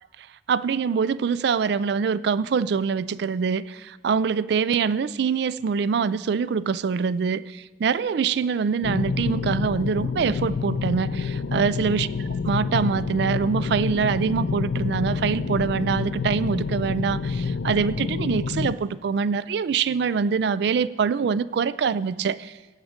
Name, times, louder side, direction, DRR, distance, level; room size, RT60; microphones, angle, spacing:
voice 1, 0.5-12.1 12.5-22.5, right 6 dB, 65° right, 17 dB, 0.3 m, -24 dB
sound 1, 8.8-18.7, left 5 dB, 70° left, 0.4 m, -28 dB
16.5 x 7.1 x 5.1 m, 1.3 s
head